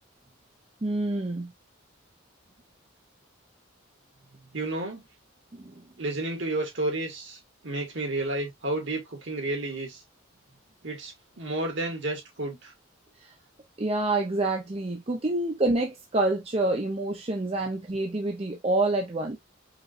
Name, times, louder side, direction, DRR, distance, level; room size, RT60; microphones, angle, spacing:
voice 1, 0.8-1.5 5.5-5.8 13.8-19.4, right 2 dB, 30° right, 0.6 m, -27 dB
voice 2, 4.5-5.0 6.0-10.0 10.8-12.7, right 2 dB, 65° right, 2.0 m, -31 dB
4.9 x 3.1 x 2.5 m
head